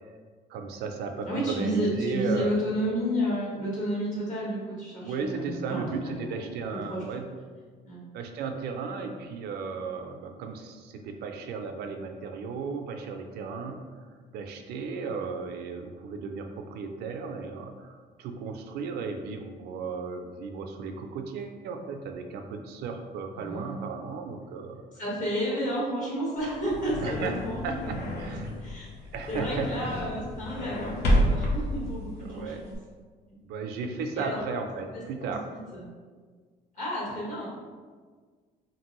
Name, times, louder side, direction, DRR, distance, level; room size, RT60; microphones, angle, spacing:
voice 1, 0.5-2.6 5.0-7.3 8.1-13.8 14.3-24.8 27.0-27.4 27.6-28.5 29.1-30.0 32.2-32.6 33.4-35.5, right 5 dB, 70° right, 5 dB, 0.4 m, -35 dB
voice 2, 1.3-7.0 7.8-8.0 23.4-23.9 24.9-28.9 29.3-32.7 34.1-34.4 34.9-35.9 36.7-37.5, equal, 50° left, -6 dB, 1.3 m, -32 dB
sound 1, 26.4-32.8, equal, 70° left, 0.6 m, -30 dB
2.9 x 2.6 x 2.9 m, 1.5 s
cardioid pair, 110°, 17 cm